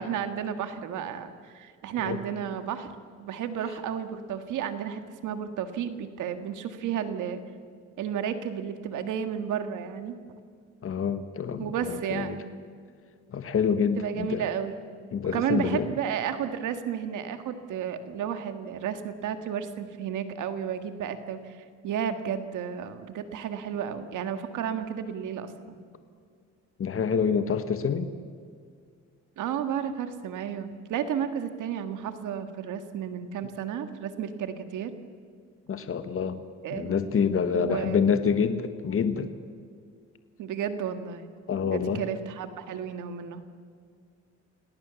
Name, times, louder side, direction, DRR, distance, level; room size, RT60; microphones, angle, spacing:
voice 1, 0.0-2.9 3.2-7.4 8.0-10.2 11.6-12.5 14.0-14.8 15.3-25.8 29.4-34.9 36.6-37.2 37.5-38.0 40.4-41.3 41.7-43.6, right 8 dB, 85° right, 8 dB, 1.9 m, -32 dB
voice 2, 10.8-12.4 13.3-14.5 15.1-15.9 26.8-28.1 35.7-36.4 36.7-39.3 41.5-42.0, left 6 dB, 45° left, 10 dB, 1.5 m, -27 dB
28.5 x 18.5 x 7.1 m, 2.1 s
cardioid pair, 90°, 30 cm